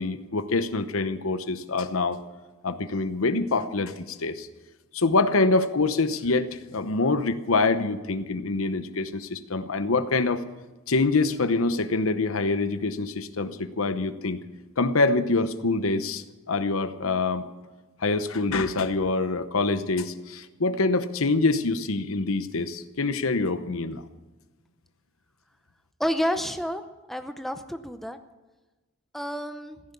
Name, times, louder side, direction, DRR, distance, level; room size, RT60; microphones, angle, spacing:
voice 1, 0.0-2.2 2.6-4.5 4.9-10.5 10.9-14.4 14.8-17.5 18.0-24.0, left 3 dB, 80° left, 11 dB, 0.9 m, -25 dB
voice 2, 26.0-26.8 27.1-28.2 29.1-29.8, equal, ahead, 8 dB, 0.6 m, -29 dB
15.5 x 10.5 x 8.5 m, 1.2 s
head